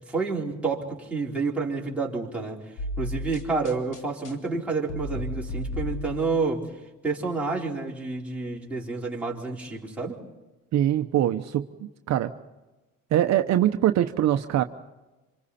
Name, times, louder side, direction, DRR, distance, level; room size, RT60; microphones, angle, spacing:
voice 1, 0.1-2.6 3.0-6.6 7.0-10.2, right 3 dB, 5° right, -4 dB, 4.2 m, -29 dB
sound 1, 2.8-6.5, left 1 dB, 80° left, 3.4 m, -34 dB
voice 2, 10.7-11.7 12.1-12.3 13.1-14.6, right 12 dB, 60° right, 7 dB, 0.9 m, -22 dB
27.0 x 26.5 x 4.3 m, 1.1 s
cardioid pair, 130°, 31 cm